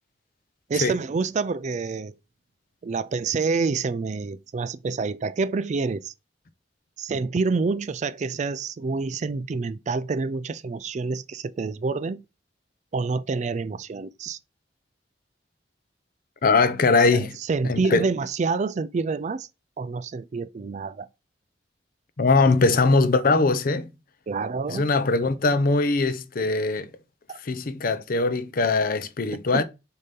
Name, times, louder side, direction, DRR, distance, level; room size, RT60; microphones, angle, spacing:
voice 1, 0.7-2.2 2.8-6.1 7.0-12.2 12.9-14.4 17.1-19.5 19.8-21.1 24.3-24.9 27.3-27.4 29.5-29.6, right 4 dB, 40° right, 0.4 m, -27 dB
voice 2, 16.4-17.4 17.7-18.0 22.2-23.9 24.7-26.9 27.4-29.6, left 3 dB, 50° left, 0.6 m, -21 dB
6.6 x 2.9 x 5.2 m
head